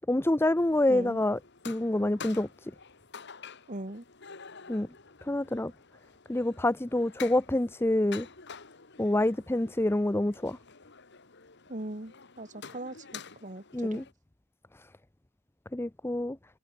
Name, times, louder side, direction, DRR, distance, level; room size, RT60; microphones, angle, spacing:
voice 1, 0.1-1.4 1.7-2.5 4.7-4.9 5.2-5.7 6.3-8.3 9.0-10.6 13.7-14.0 15.7-16.4, left 1 dB, 10° left, 0.5 m, -27 dB
sound 1, 0.6-14.1, left 6 dB, 55° left, 2.1 m, -49 dB
voice 2, 0.9-1.2 3.7-4.0 11.7-14.0, right 1 dB, 35° right, 2.1 m, -40 dB
head